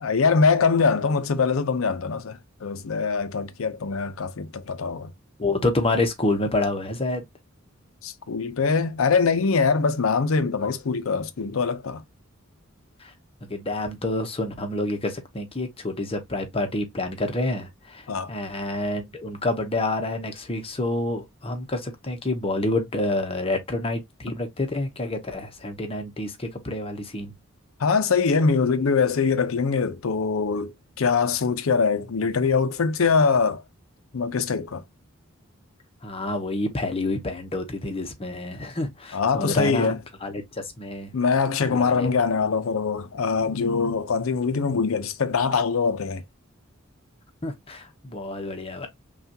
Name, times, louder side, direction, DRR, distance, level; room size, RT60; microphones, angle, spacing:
voice 1, 0.0-5.1 8.0-12.0 18.1-18.3 27.8-33.6 34.1-34.8 39.1-40.0 41.1-46.2, left 5 dB, 75° left, 0.6 m, -23 dB
voice 2, 5.4-7.2 13.0-13.1 13.4-27.3 36.0-39.9 40.2-41.1 41.6-42.1 47.4-48.9, left 2 dB, 30° left, 0.9 m, -28 dB
5.6 x 2.4 x 2.8 m
head